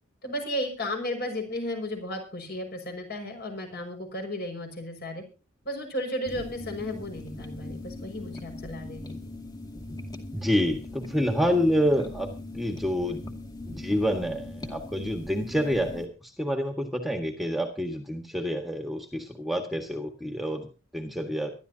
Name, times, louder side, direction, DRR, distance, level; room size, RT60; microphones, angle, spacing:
voice 1, 0.2-5.2 5.6-9.2, left 1 dB, 50° left, 4 dB, 5.9 m, -34 dB
sound 1, 6.2-16.1, left 2 dB, 20° left, 2.2 m, -40 dB
voice 2, 10.3-12.3 12.5-13.2 13.6-20.7 20.9-21.5, equal, ahead, 4 dB, 1.7 m, -28 dB
24.0 x 12.5 x 2.8 m, 0.33 s
head